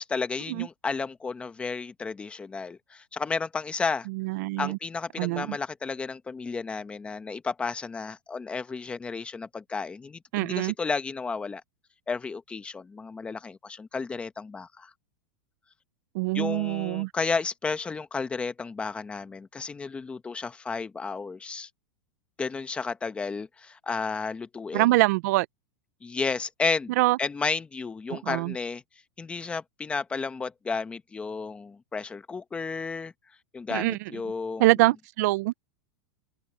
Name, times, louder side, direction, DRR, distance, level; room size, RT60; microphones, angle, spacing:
voice 1, 0.0-4.1 4.6-11.6 12.1-14.9 16.3-21.7 22.4-24.9 26.0-28.8 29.2-33.1 33.5-34.7, left 4 dB, 10° left, 1.1 m, -32 dB
voice 2, 4.1-4.8 5.2-5.6 10.3-10.7 16.1-17.1 24.7-25.5 27.0-27.2 28.1-28.5 33.7-34.0 34.6-35.5, right 20 dB, 50° right, 0.4 m, -24 dB
supercardioid pair, 165°, 12 cm